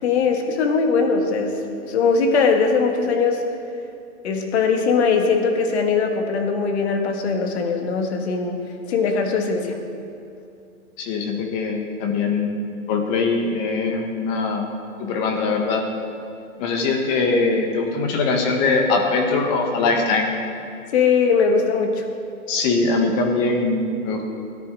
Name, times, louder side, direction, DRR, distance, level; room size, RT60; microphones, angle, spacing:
voice 1, 0.0-1.6 1.9-3.4 4.2-8.6 8.9-9.8 20.9-22.0, left 5 dB, 45° left, 4 dB, 1.9 m, -20 dB
voice 2, 11.0-12.5 12.9-14.6 15.0-15.9 16.6-20.3 22.5-24.2, left 3 dB, 25° left, 2 dB, 1.6 m, -22 dB
17.5 x 10.0 x 4.8 m, 2.5 s
hypercardioid pair, 150°, 43 cm